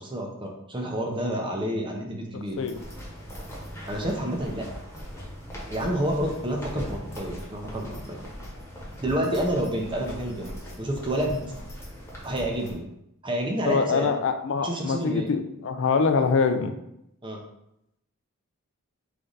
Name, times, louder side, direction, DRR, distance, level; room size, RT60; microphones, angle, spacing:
voice 1, 0.0-2.6 3.9-4.6 5.7-8.2 9.0-10.5 10.8-11.4 12.2-12.9 13.2-14.1 14.6-15.3 17.2-17.4, right 1 dB, 20° right, 1 dB, 0.7 m, -29 dB
sound 1, 2.5-12.7, equal, 10° left, 1.1 m, -39 dB
voice 2, 13.7-16.7, left 5 dB, 60° left, 7 dB, 0.4 m, -24 dB
3.7 x 3.3 x 3.9 m, 0.81 s
head